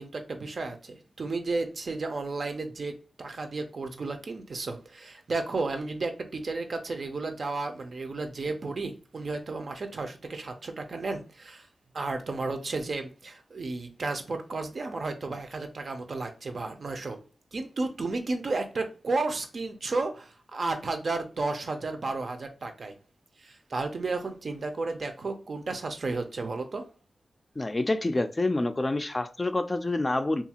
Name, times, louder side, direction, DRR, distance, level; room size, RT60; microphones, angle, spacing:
voice 1, 0.0-11.7 11.9-17.2 17.5-22.9 23.4-26.9, right 3 dB, 60° right, 0.5 m, -33 dB
voice 2, 27.6-30.4, left 2 dB, 30° left, 0.3 m, -27 dB
2.7 x 2.3 x 2.8 m
cardioid pair, 60°, 0 cm